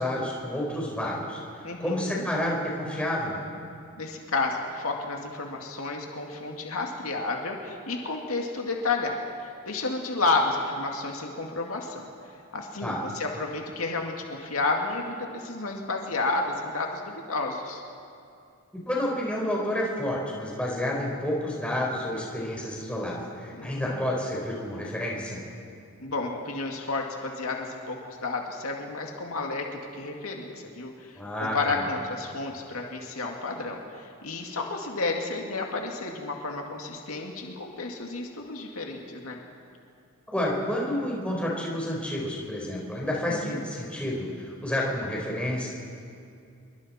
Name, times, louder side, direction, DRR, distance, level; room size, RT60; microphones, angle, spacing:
voice 1, 0.0-3.4 12.8-13.0 18.9-25.4 31.2-31.8 40.3-45.7, left 1 dB, 5° left, -4 dB, 4.3 m, -30 dB
voice 2, 1.6-2.2 4.0-9.2 9.7-12.0 12.5-17.8 23.5-24.0 26.0-39.4 43.3-43.6, left 3 dB, 80° left, 1 dB, 2.2 m, -31 dB
27.0 x 23.0 x 4.3 m, 2.4 s
head